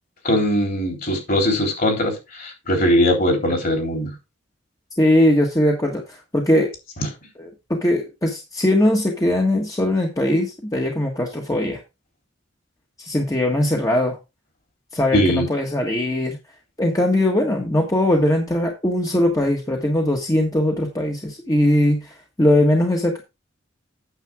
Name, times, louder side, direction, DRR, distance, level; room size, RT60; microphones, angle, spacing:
voice 1, 0.2-4.1 15.1-15.5, equal, 50° left, 3.7 m, -20 dB
voice 2, 5.0-6.7 7.4-11.8 13.0-14.2 14.9-16.4 16.8-23.2, left 1 dB, 20° left, 1.5 m, -20 dB
9.2 x 7.3 x 3.5 m
head